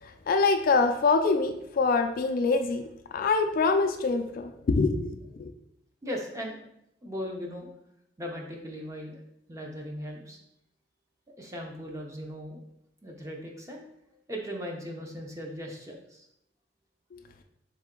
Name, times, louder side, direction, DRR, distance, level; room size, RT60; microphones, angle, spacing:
voice 1, 0.0-2.8 3.1-5.5 17.1-17.2, left 4 dB, 50° left, 6 dB, 0.3 m, -25 dB
voice 2, 6.0-6.6 7.0-7.7 8.2-9.2 9.5-10.4 11.4-12.6 13.0-13.8 14.3-16.3, equal, 15° right, 0 dB, 0.6 m, -38 dB
3.7 x 3.3 x 3.7 m, 0.78 s
head